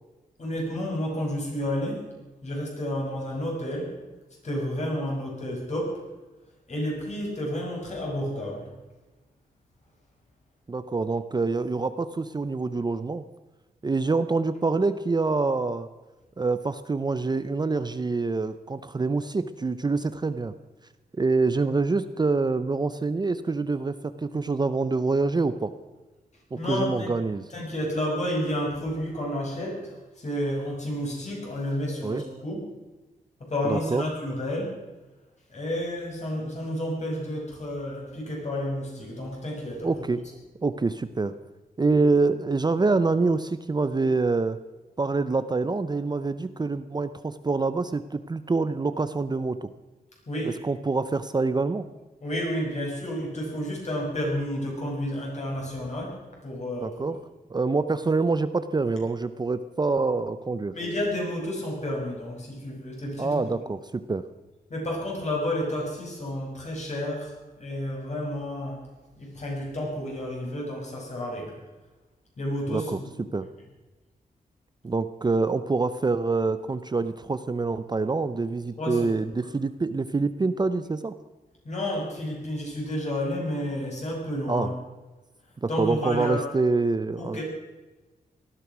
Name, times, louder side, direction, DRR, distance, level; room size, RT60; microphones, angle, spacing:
voice 1, 0.4-2.1 2.4-3.9 4.4-6.0 6.7-8.7 26.5-27.1 27.5-32.6 33.4-34.8 35.5-39.9 50.3-50.6 52.2-57.2 60.7-63.4 64.7-68.8 69.2-71.6 72.4-73.1 78.8-79.1 81.6-84.7 85.7-86.4 87.2-87.4, left 1 dB, 45° left, -1 dB, 6.3 m, -31 dB
voice 2, 10.7-13.2 13.8-15.9 16.4-20.5 21.2-25.7 26.5-27.4 32.0-32.2 33.6-34.1 39.8-40.2 40.6-41.3 41.8-44.6 45.0-49.7 50.6-51.9 56.8-57.2 57.5-60.7 63.2-64.2 72.7-73.0 73.3-73.5 74.8-81.1 84.5-84.7 85.6-87.4, right 3 dB, 25° right, 12 dB, 0.6 m, -26 dB
18.5 x 13.0 x 6.1 m, 1.2 s
wide cardioid pair, 120°, 16 cm